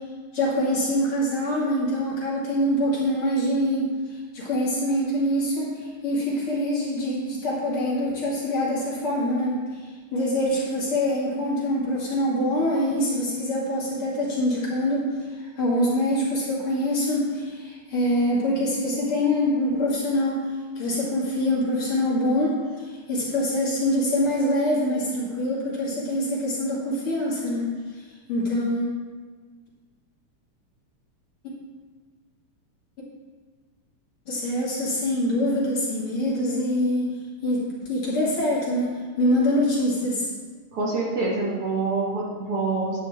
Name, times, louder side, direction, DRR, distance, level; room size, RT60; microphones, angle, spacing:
voice 1, 0.3-15.1 15.4-20.5 20.8-27.7 28.3-28.9 34.3-37.1 37.4-40.3, left 1 dB, 50° left, -6 dB, 3.0 m, -25 dB
voice 2, 40.7-43.0, right 3 dB, 55° right, -4 dB, 2.2 m, -26 dB
10.5 x 9.4 x 3.6 m, 1.5 s
omnidirectional pair, 3.4 m